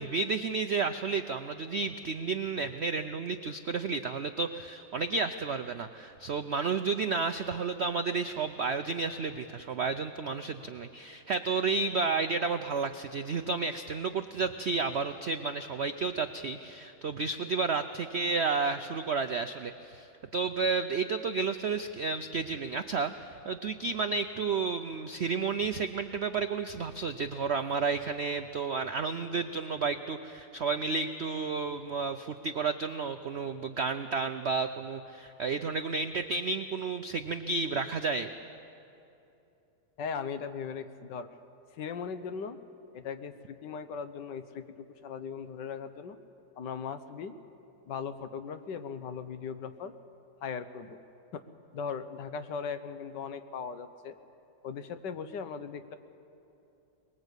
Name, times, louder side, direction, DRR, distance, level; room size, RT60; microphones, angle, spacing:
voice 1, 0.0-20.1 20.3-38.3, right 4 dB, 75° right, 9 dB, 0.6 m, -31 dB
voice 2, 40.0-41.3 41.7-42.6 42.9-46.2 46.6-47.3 47.9-49.9 50.4-51.0 51.3-51.4 51.7-54.1 54.6-56.0, left 6 dB, 75° left, 10 dB, 1.6 m, -38 dB
23.0 x 20.5 x 8.2 m, 2.8 s
omnidirectional pair, 1.9 m